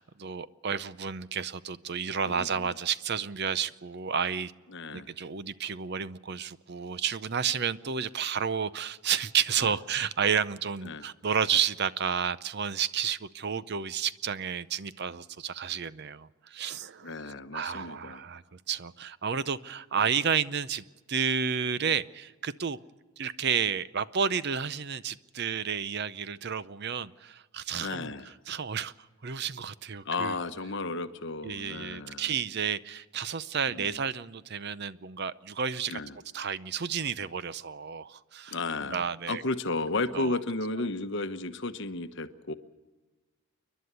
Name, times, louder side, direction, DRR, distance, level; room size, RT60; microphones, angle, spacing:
voice 1, 0.0-4.5 4.9-17.1 17.5-22.8 23.2-28.1 28.5-28.9 29.2-30.4 31.4-36.0 36.3-38.6 38.9-39.4 40.1-40.4, right 7 dB, 50° right, 0.6 m, -31 dB
voice 2, 2.2-2.7 4.7-5.1 10.8-11.0 17.0-18.2 27.8-28.3 30.0-32.3 33.7-33.9 35.9-36.2 38.5-42.5, left 3 dB, 55° left, 1.0 m, -33 dB
29.5 x 11.5 x 8.2 m
head